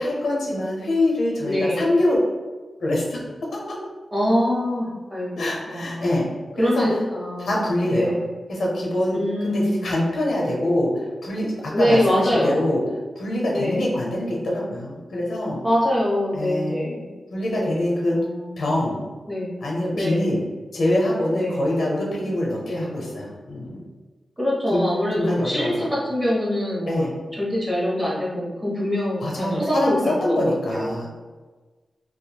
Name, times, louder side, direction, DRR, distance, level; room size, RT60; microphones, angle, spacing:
voice 1, 0.0-2.2 2.8-3.8 5.4-6.3 6.6-6.9 7.4-8.1 8.5-10.9 11.2-12.8 13.2-15.6 16.3-16.8 17.3-18.2 18.6-19.0 19.6-20.4 20.7-23.8 24.7-24.8 25.2-25.9 26.9-27.1 29.2-31.2, left 1 dB, 85° left, -3 dB, 0.7 m, -24 dB
voice 2, 1.4-1.9 4.1-6.2 6.6-7.5 7.8-8.3 9.1-9.8 11.7-12.6 13.5-13.9 15.6-17.1 17.5-18.9 19.3-19.5 19.9-20.3 21.3-21.6 22.7-22.9 24.4-31.1, left 1 dB, 15° right, -6 dB, 0.9 m, -24 dB
3.0 x 2.3 x 2.3 m, 1.3 s
wide cardioid pair, 85°, 0 cm